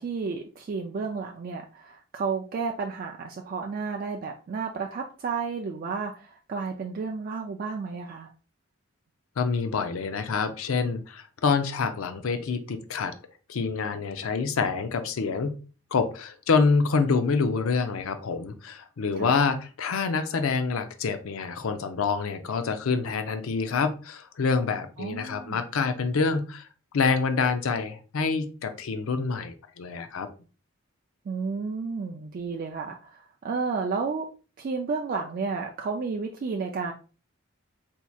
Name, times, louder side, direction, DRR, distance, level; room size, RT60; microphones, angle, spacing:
voice 1, 0.0-8.3 19.2-19.3 25.0-25.6 31.3-34.3 34.6-36.9, right 4 dB, 45° right, 2 dB, 0.3 m, -32 dB
voice 2, 9.4-13.1 13.5-15.6 15.9-26.7 26.9-30.3, left 4 dB, 80° left, 8 dB, 0.5 m, -26 dB
4.3 x 2.8 x 2.3 m, 0.36 s
head